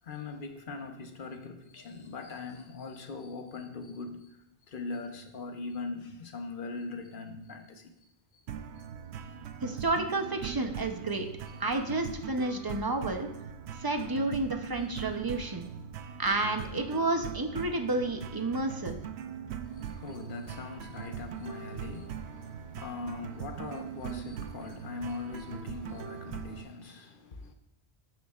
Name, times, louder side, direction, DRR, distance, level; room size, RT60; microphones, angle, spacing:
voice 1, 0.1-4.2 4.7-7.8 11.5-11.8 12.4-12.5 19.7-27.5, left 3 dB, 55° left, 1.0 m, -41 dB
sound 1, 8.5-26.6, right 8 dB, 90° right, 0.9 m, -41 dB
voice 2, 9.6-11.3 11.6-13.3 13.8-15.7 16.2-19.0, right 2 dB, 25° right, 0.6 m, -30 dB
12.0 x 7.1 x 2.4 m
omnidirectional pair, 1.1 m